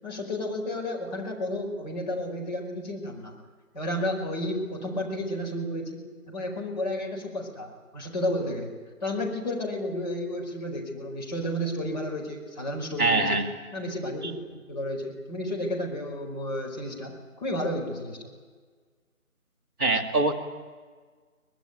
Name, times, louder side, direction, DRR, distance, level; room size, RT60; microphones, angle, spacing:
voice 1, 0.0-3.4 3.7-8.7 9.0-13.4 13.7-18.3, left 1 dB, 30° left, -1 dB, 4.8 m, -32 dB
voice 2, 13.0-13.4 19.8-20.3, right 2 dB, 15° right, -7 dB, 2.2 m, -23 dB
23.5 x 20.0 x 9.4 m, 1.5 s
figure-of-eight pair, 160°, 42 cm